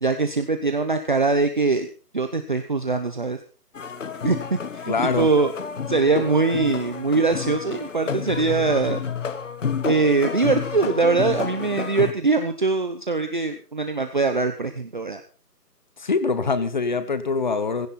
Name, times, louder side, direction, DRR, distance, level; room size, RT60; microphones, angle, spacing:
voice 1, 0.0-1.9 2.1-3.4 4.2-5.5 5.9-9.0 9.8-15.2, right 3 dB, 30° right, 7 dB, 0.9 m, -22 dB
sound 1, 3.7-12.1, left 6 dB, 50° left, 1.5 m, -30 dB
voice 2, 4.9-5.3 16.0-17.9, left 4 dB, 30° left, 13 dB, 1.2 m, -24 dB
16.5 x 15.5 x 4.3 m, 0.36 s
hypercardioid pair, 170°, 48 cm